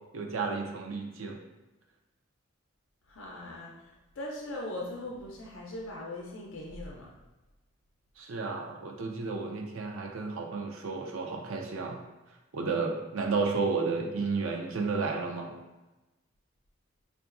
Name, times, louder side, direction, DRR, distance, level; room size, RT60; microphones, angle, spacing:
voice 1, 0.1-1.4 8.2-12.0 12.5-15.5, right 4 dB, 80° right, 1 dB, 0.5 m, -32 dB
voice 2, 3.1-7.1, left 1 dB, 65° left, -2 dB, 0.5 m, -40 dB
4.6 x 2.4 x 2.5 m, 1.1 s
head